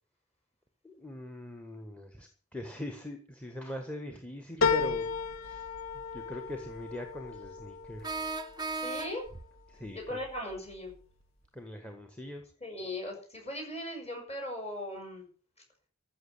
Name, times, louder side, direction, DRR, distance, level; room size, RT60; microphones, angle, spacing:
voice 1, 0.8-5.1 5.4-5.7 6.1-8.3 9.7-10.2 11.5-12.4, left 1 dB, 5° left, 6 dB, 1.4 m, -41 dB
sound 1, 4.6-9.4 9.9-10.6 10.9-11.0, left 5 dB, 60° left, 1.2 m, -34 dB
sound 2, 5.7-5.8 8.0-9.5, right 3 dB, 20° right, 0.7 m, -36 dB
voice 2, 8.7-9.2 9.9-11.0 12.6-15.3, left 1 dB, 30° left, 1 dB, 6.9 m, -38 dB
14.0 x 6.6 x 9.8 m, 0.43 s
head